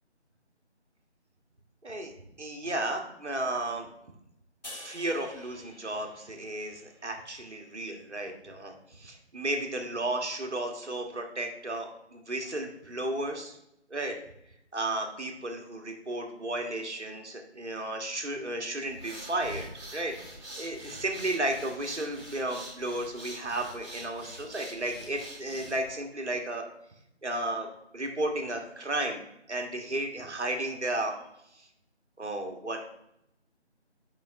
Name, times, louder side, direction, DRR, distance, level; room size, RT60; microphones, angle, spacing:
voice 1, 1.8-2.1 2.4-3.9 4.7-13.6 13.9-14.2 14.7-26.6 27.2-27.7 27.9-31.1 31.6-31.7 32.2-32.9, right 1 dB, 75° right, 3 dB, 1.4 m, -33 dB
sound 1, 4.6-7.9, left 1 dB, 40° left, 2.0 m, -49 dB
sound 2, 18.8-26.0, right 1 dB, 55° right, 2.3 m, -45 dB
9.3 x 5.1 x 2.7 m, 0.81 s
figure-of-eight pair, 165°, 35 cm